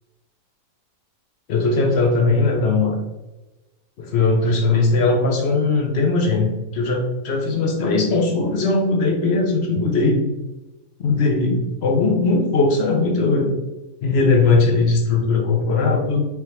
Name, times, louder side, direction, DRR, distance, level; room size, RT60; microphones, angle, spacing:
voice 1, 1.5-3.0 4.0-10.3 11.0-13.6 14.0-16.2, left 3 dB, 60° left, 1 dB, 0.7 m, -19 dB
4.7 x 2.9 x 3.2 m, 1.0 s
omnidirectional pair, 1.8 m